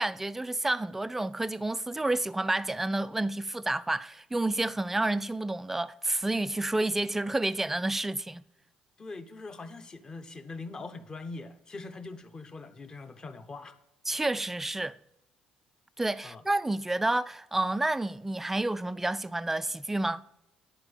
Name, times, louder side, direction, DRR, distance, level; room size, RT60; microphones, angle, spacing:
voice 1, 0.0-8.4 14.1-15.0 16.0-20.2, right 2 dB, 10° right, 0.4 m, -29 dB
voice 2, 9.0-13.7 16.2-16.4, left 3 dB, 25° left, 0.9 m, -42 dB
10.5 x 4.6 x 7.9 m
cardioid pair, 105°, 3 cm